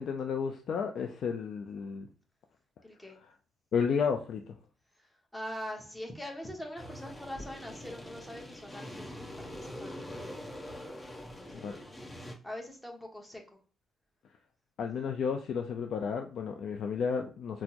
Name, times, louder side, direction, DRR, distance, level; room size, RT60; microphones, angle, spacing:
voice 1, 0.0-2.1 3.7-4.4 11.6-11.8 14.8-17.6, left 6 dB, 65° left, 0.3 m, -32 dB
voice 2, 2.8-3.2 5.0-9.1 9.4-10.1 11.2-12.1 12.4-13.4, equal, 5° left, 0.9 m, -43 dB
sound 1, 6.8-12.3, left 1 dB, 30° left, 0.9 m, -44 dB
4.1 x 2.0 x 2.8 m
cardioid pair, 90°, 0 cm